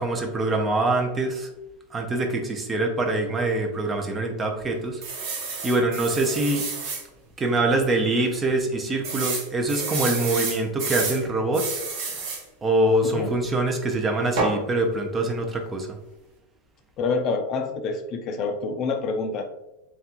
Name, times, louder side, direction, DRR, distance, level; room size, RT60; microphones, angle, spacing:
voice 1, 0.0-1.5 1.9-5.0 5.6-6.7 7.4-11.8 12.6-16.0, right 2 dB, 15° right, 3 dB, 0.6 m, -24 dB
sound 1, 5.0-7.0 7.6-7.7 7.9-8.0 9.0-11.2 11.5-12.4 14.4-14.6, right 4 dB, 55° right, 1.1 m, -29 dB
voice 2, 13.0-13.4 17.0-19.5, left 4 dB, 35° left, 6 dB, 0.5 m, -27 dB
3.7 x 3.5 x 2.9 m, 0.93 s
supercardioid pair, 145°, 0 cm